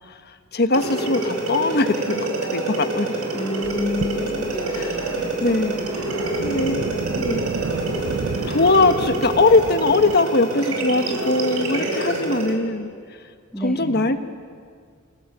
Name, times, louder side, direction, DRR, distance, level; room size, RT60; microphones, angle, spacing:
voice 1, 0.3-3.1 4.7-5.0 5.4-5.8 6.4-6.8 7.2-7.5 8.5-12.9 13.6-14.2, left 3 dB, 50° left, 8 dB, 1.3 m, -21 dB
sound 1, 0.7-12.6, right 2 dB, 85° right, 5.0 m, -27 dB
voice 2, 3.3-5.1 13.5-14.0, left 1 dB, 5° left, -2 dB, 2.2 m, -30 dB
sound 2, 3.6-10.2, right 4 dB, 55° right, 0.6 m, -32 dB
29.0 x 17.0 x 8.2 m, 2.1 s
head